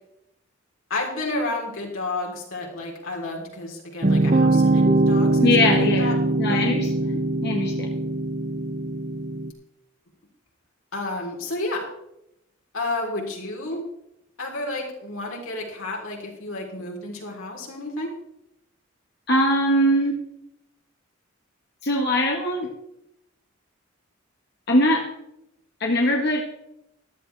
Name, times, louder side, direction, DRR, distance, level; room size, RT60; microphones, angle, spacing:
voice 1, 0.9-5.5 5.8-6.2 6.4-6.7 10.9-11.8 12.7-13.8 14.4-18.1, left 2 dB, 85° left, -1 dB, 3.7 m, -31 dB
sound 1, 4.0-9.5, right 2 dB, 35° right, 0.6 m, -21 dB
voice 2, 5.4-7.9 19.3-20.2 21.8-22.7 24.7-25.0 25.8-26.4, left 1 dB, 50° left, 0 dB, 1.5 m, -22 dB
14.5 x 11.5 x 3.4 m, 0.82 s
head